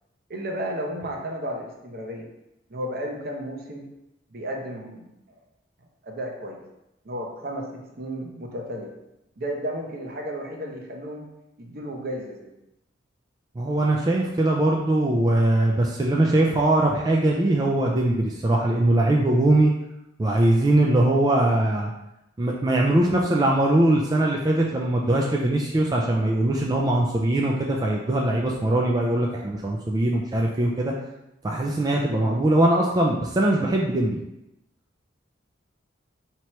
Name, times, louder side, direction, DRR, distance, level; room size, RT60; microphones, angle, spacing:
voice 1, 0.3-2.3 2.7-3.9 4.3-5.1 6.0-6.6 7.0-8.9 9.4-11.3 11.6-12.5, equal, 55° right, 0 dB, 0.7 m, -33 dB
voice 2, 13.6-19.7 20.2-21.9 22.4-30.9 31.4-34.2, right 1 dB, 20° right, -1 dB, 0.3 m, -21 dB
4.6 x 2.9 x 3.0 m, 0.89 s
head